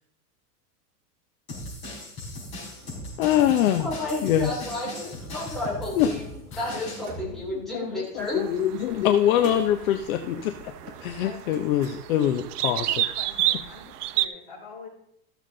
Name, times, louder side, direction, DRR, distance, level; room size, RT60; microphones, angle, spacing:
sound 1, 1.5-7.0, left 1 dB, 25° left, 4.5 m, -38 dB
sound 2, 2.8-12.4, right 3 dB, 30° right, 1.9 m, -48 dB
voice 1, 3.2-3.9 4.2-4.6 5.9-6.1 6.5-6.6 7.9-10.7 11.0-13.0, left 10 dB, 60° left, 7 dB, 0.8 m, -24 dB
voice 2, 3.8-6.2 6.6-8.5, left 2 dB, ahead, -7 dB, 2.7 m, -31 dB
sound 3, 8.2-14.3, right 13 dB, 80° right, 0.7 m, -31 dB
voice 3, 11.2-11.6 12.6-14.9, left 4 dB, 40° left, -5 dB, 4.8 m, -45 dB
14.0 x 7.2 x 3.8 m, 0.75 s
supercardioid pair, 165°, 46 cm